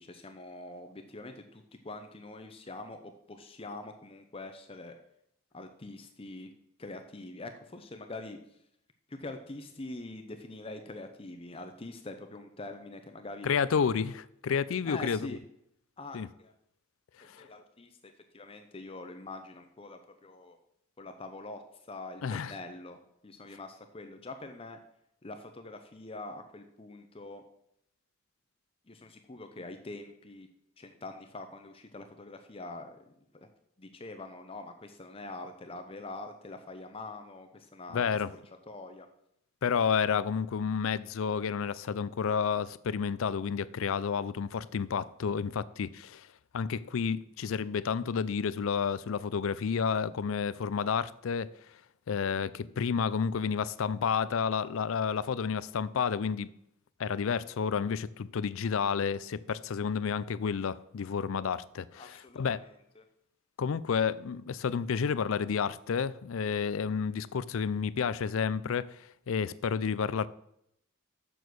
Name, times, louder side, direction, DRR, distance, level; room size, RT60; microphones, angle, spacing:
voice 1, 0.0-4.9 5.5-6.5 6.8-8.4 9.1-13.5 14.8-15.4 16.0-16.5 17.2-20.6 21.0-21.6 21.9-23.0 23.2-24.8 25.2-27.4 28.9-30.5 30.8-33.0 33.3-33.5 33.8-38.4 38.7-39.1 62.0-62.7 63.0-63.1, left 2 dB, 25° left, 0.6 m, -44 dB
voice 2, 13.4-15.4 16.1-16.3 17.3-17.4 22.2-22.5 37.9-38.3 39.6-46.3 46.5-51.5 52.1-56.5 57.0-62.6 63.6-68.9 69.3-70.3, left 6 dB, 70° left, 0.4 m, -30 dB
7.1 x 6.2 x 6.2 m
head